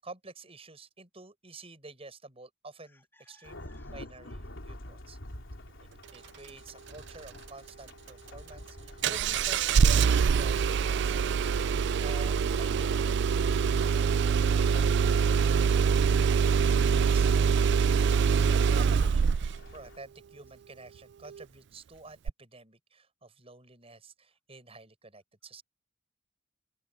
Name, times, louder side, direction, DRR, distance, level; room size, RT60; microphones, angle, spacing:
voice 1, 0.0-3.6 3.9-5.2 5.8-11.3 16.8-25.6, right 3 dB, 30° right, 7.6 m, -50 dB
voice 2, 3.2-3.9 15.5-17.1, left 2 dB, 10° left, 3.0 m, -63 dB
Thunderstorm / Rain, 3.4-20.0, left 1 dB, 85° left, 3.4 m, -49 dB
Engine starting, 9.0-19.6 22.3-22.4, right 6 dB, 60° right, 0.4 m, -24 dB
open air
head